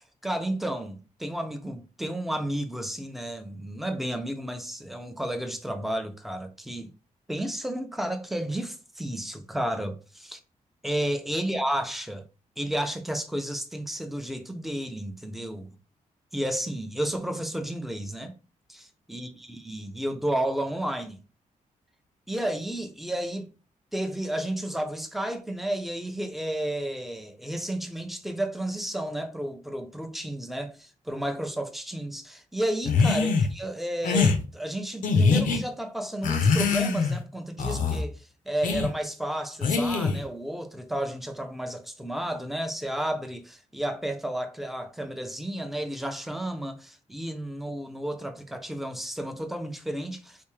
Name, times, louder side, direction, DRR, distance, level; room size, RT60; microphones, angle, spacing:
voice 1, 0.0-6.9 7.3-10.4 10.8-12.2 12.6-15.7 16.3-18.3 18.7-21.2 22.3-23.5 23.9-38.1 38.5-50.4, right 1 dB, ahead, 0.6 m, -32 dB
sound 1, 32.9-33.5 34.0-34.4 35.0-35.6 36.2-37.2 37.6-38.0 38.6-38.9 39.6-40.2, left 4 dB, 80° left, 0.7 m, -23 dB
3.4 x 2.7 x 3.2 m
cardioid pair, 90°, 14 cm